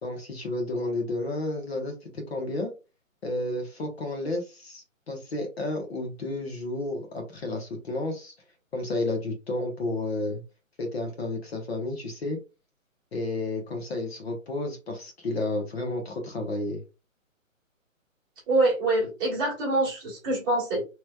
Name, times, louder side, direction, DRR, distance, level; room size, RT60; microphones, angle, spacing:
voice 1, 0.0-2.7 3.2-8.3 8.7-10.4 10.8-12.4 13.1-16.8, left 2 dB, 50° left, 3 dB, 1.1 m, -31 dB
voice 2, 18.5-20.8, right 2 dB, 15° right, -7 dB, 1.4 m, -25 dB
3.1 x 3.1 x 2.2 m, 0.29 s
hypercardioid pair, 165°, 41 cm